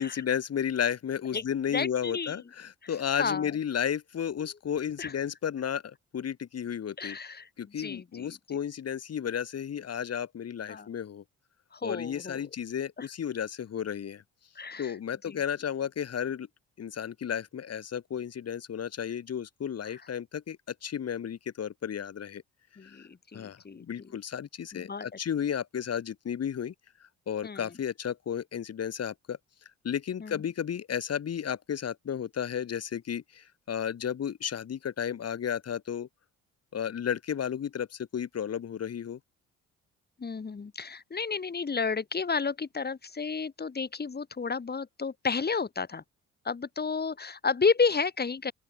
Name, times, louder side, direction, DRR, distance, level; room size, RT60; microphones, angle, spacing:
voice 1, 0.0-7.2 7.6-11.2 11.8-14.2 14.8-16.5 16.8-22.4 22.8-23.0 23.3-26.7 27.3-29.4 29.8-36.1 36.7-39.2, left 8 dB, 55° left, 4.3 m, -33 dB
voice 2, 1.7-2.3 2.8-2.9 3.2-3.5 5.0-5.1 7.0-7.5 7.8-8.6 10.7-10.9 11.7-12.5 13.0-13.1 14.6-15.0 15.3-15.4 22.8-23.8 24.7-25.1 27.4-27.7 30.2-30.4 40.2-46.0 46.5-48.5, left 5 dB, 35° left, 5.2 m, -31 dB
open air
cardioid pair, 90°, 30 cm